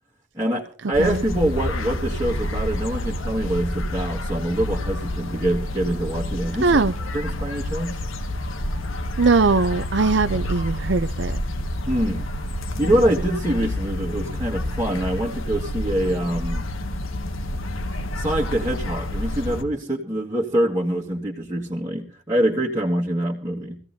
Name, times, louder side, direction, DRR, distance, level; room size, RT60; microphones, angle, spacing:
voice 1, 0.4-6.8 7.1-8.0 11.9-12.2 12.8-16.6 18.2-23.8, right 1 dB, 15° right, 1.7 m, -25 dB
sound 1, 0.9-19.6, left 1 dB, 80° left, 1.7 m, -28 dB
voice 2, 6.6-6.9 9.2-11.4, right 4 dB, 60° right, 0.6 m, -20 dB
24.0 x 16.0 x 2.7 m
head